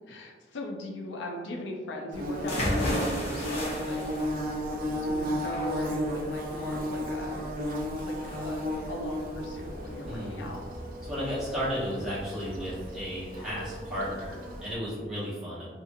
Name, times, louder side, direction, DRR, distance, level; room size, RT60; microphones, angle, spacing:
voice 1, 0.1-4.0 4.5-7.5 8.0-10.7, left 2 dB, 85° left, 1 dB, 0.4 m, -39 dB
Bird / Buzz, 2.1-14.7, equal, 50° right, 0.4 m, -34 dB
sound 1, 2.5-10.1, equal, 35° left, 0.8 m, -35 dB
voice 2, 10.1-10.4 11.0-15.7, equal, 5° right, -11 dB, 1.1 m, -34 dB
2.7 x 2.5 x 2.6 m, 1.5 s
head